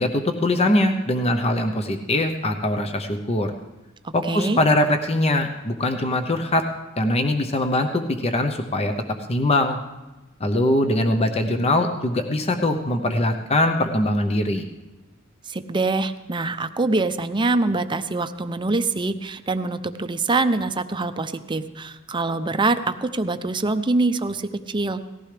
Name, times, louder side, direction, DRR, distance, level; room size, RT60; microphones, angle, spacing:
voice 1, 0.0-3.5 4.1-6.7 7.0-8.9 9.3-9.8 10.4-14.6, left 1 dB, 30° left, 6 dB, 0.7 m, -22 dB
voice 2, 4.3-4.6 15.5-25.0, right 3 dB, 25° right, 9 dB, 0.6 m, -24 dB
18.5 x 15.0 x 3.3 m, 1.1 s
head